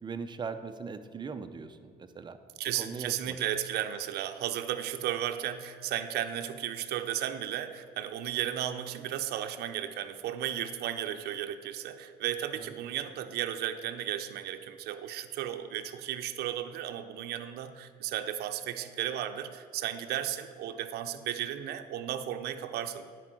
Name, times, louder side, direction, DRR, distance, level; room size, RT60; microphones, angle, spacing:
voice 1, 0.0-2.4 2.8-3.4 12.6-12.7, right 5 dB, 25° right, 8 dB, 0.6 m, -40 dB
voice 2, 2.6-23.1, right 11 dB, 70° right, 8 dB, 0.6 m, -34 dB
10.0 x 4.5 x 7.5 m, 2.2 s
cardioid pair, 110°, 17 cm